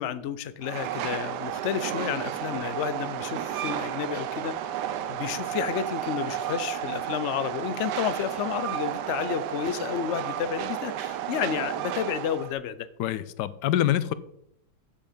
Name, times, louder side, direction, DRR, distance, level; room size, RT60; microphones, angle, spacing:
voice 1, 0.0-4.6 5.1-12.9, left 9 dB, 60° left, 0.7 m, -31 dB
Train, 0.6-12.5, right 11 dB, 80° right, 1.2 m, -32 dB
voice 2, 13.0-14.1, left 12 dB, 85° left, 1.2 m, -25 dB
8.5 x 7.4 x 5.2 m
omnidirectional pair, 1.8 m